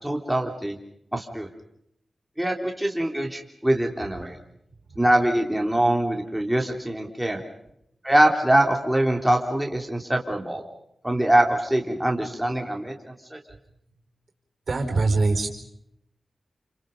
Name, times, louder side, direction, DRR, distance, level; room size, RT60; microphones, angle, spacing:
voice 1, 0.0-0.8 1.1-1.5 2.4-4.4 4.9-7.4 8.0-10.6 11.0-13.4, right 1 dB, 5° right, 2 dB, 3.5 m, -23 dB
voice 2, 14.7-15.5, right 3 dB, 65° right, 4 dB, 4.7 m, -23 dB
29.0 x 26.0 x 5.3 m, 0.76 s
cardioid pair, 60°, 0 cm